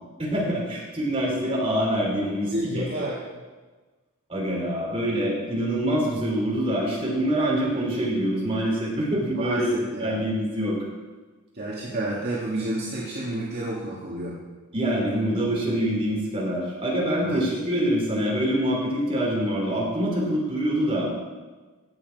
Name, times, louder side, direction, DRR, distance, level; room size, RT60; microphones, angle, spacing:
voice 1, 0.2-3.1 4.3-9.7 10.0-10.8 14.7-21.1, equal, 25° right, -3 dB, 3.5 m, -25 dB
voice 2, 2.5-3.2 9.3-10.2 11.5-14.4 17.2-17.4, right 1 dB, 50° right, -6 dB, 1.9 m, -30 dB
16.5 x 7.5 x 4.7 m, 1.3 s
head